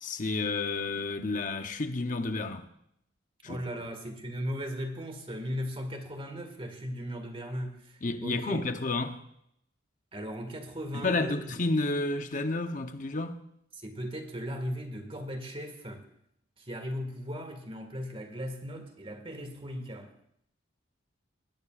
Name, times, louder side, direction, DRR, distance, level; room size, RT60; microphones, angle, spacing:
voice 1, 0.0-2.7 3.4-3.6 8.0-9.2 10.9-13.4, left 3 dB, 45° left, 0.8 m, -31 dB
voice 2, 3.4-8.6 10.1-11.5 13.8-16.1 16.6-20.1, equal, 30° right, 1.8 m, -37 dB
21.5 x 17.0 x 2.5 m
head